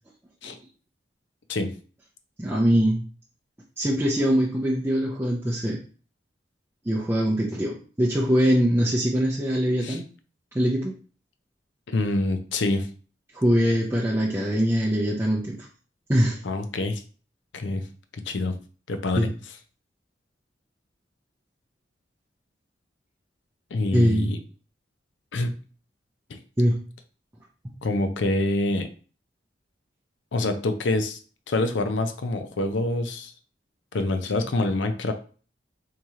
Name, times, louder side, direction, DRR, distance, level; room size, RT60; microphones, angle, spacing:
voice 1, 2.4-3.0 3.8-5.8 6.8-10.1 10.5-10.9 13.3-15.6 16.1-16.4 19.1-19.3 23.9-24.3 26.6-26.8, equal, 15° right, -4 dB, 0.5 m, -22 dB
voice 2, 11.9-12.9 16.4-17.0 17.5-17.8 18.1-18.6 18.9-19.3 23.7-24.4 25.3-25.5 26.3-26.4 27.8-28.9 30.3-31.2 31.5-33.3 33.9-35.1, left 2 dB, 85° left, 8 dB, 0.5 m, -26 dB
3.0 x 2.8 x 3.6 m, 0.39 s
head